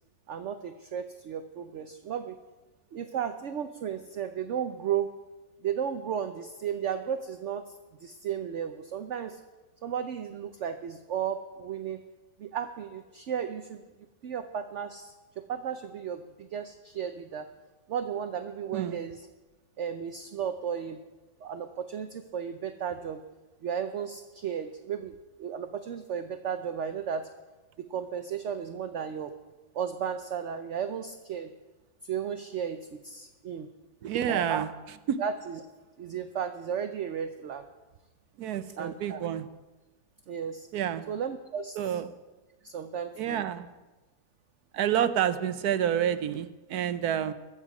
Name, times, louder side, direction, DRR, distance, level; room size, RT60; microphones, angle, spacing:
voice 1, 0.3-2.3 2.9-5.1 5.6-7.6 8.0-9.4 9.8-12.0 12.4-13.8 14.2-17.5 17.9-19.2 19.8-21.0 21.4-23.2 23.6-27.3 27.8-29.3 29.7-31.5 32.0-33.7 34.3-34.7 35.2-35.6 36.0-37.7 38.8-39.2 40.3-40.7 41.1-42.0 42.6-43.5, right 8 dB, 60° right, 8 dB, 0.9 m, -34 dB
voice 2, 18.7-19.0 34.0-34.7 35.1-35.2 38.4-39.5 40.7-41.1 41.8-42.1 43.2-43.7 44.7-47.3, right 9 dB, 80° right, 12 dB, 1.2 m, -29 dB
22.0 x 8.2 x 4.9 m, 1.2 s
omnidirectional pair, 1.6 m